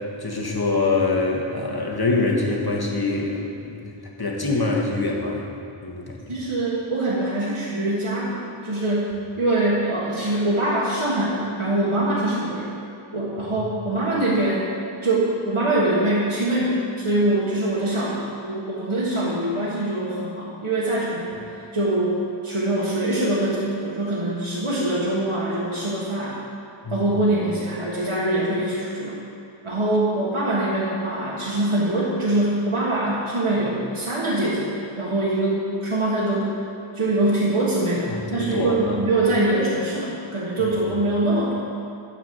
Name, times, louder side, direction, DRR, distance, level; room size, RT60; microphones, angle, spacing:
voice 1, 0.2-3.9 4.2-5.5 5.8-6.2 26.8-27.1 38.1-39.1, left 3 dB, 50° left, -1 dB, 1.6 m, -24 dB
voice 2, 6.3-12.7 13.1-14.7 15.0-22.2 22.4-26.4 26.9-29.2 29.6-36.5 36.9-41.6, right 1 dB, 90° right, -8 dB, 1.5 m, -23 dB
12.0 x 4.6 x 7.7 m, 2.5 s
wide cardioid pair, 40°, 49 cm